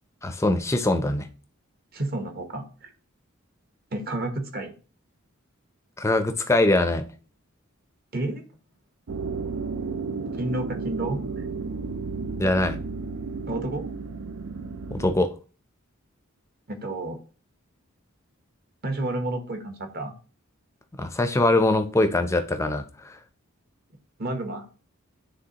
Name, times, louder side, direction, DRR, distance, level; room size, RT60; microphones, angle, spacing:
voice 1, 0.2-1.3 6.0-7.1 12.4-12.8 14.9-15.3 21.0-23.2, left 2 dB, 15° left, 0.5 m, -22 dB
voice 2, 1.9-2.9 3.9-4.7 8.1-8.4 10.3-11.2 13.5-13.8 16.7-17.2 18.8-20.1 24.2-24.6, right 2 dB, 45° right, 1.0 m, -30 dB
sound 1, 9.1-15.1, right 4 dB, 80° right, 0.5 m, -33 dB
9.8 x 3.4 x 2.9 m
head